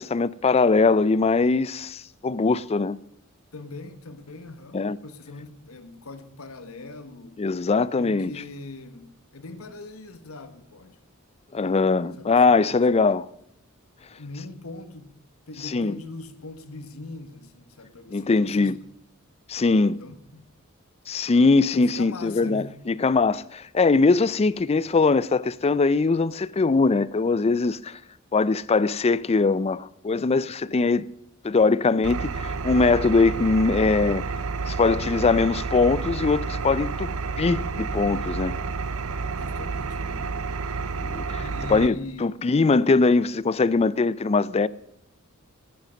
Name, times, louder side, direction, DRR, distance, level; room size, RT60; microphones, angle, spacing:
voice 1, 0.0-3.0 4.7-5.0 7.4-8.3 11.5-13.3 15.7-15.9 18.1-18.7 19.5-20.0 21.1-28.0 28.3-31.1 31.4-34.2 34.7-37.1 37.4-38.6 41.0-41.4 41.7-44.7, left 3 dB, 30° left, 0.4 m, -21 dB
voice 2, 3.5-7.5 8.0-11.0 12.2-12.6 14.0-15.2 15.5-18.8 20.0-20.5 21.7-22.8 39.3-40.4 41.4-42.3, left 3 dB, 85° left, 1.3 m, -41 dB
Engine, 32.0-41.9, right 4 dB, 80° right, 0.7 m, -30 dB
14.0 x 10.5 x 6.4 m
head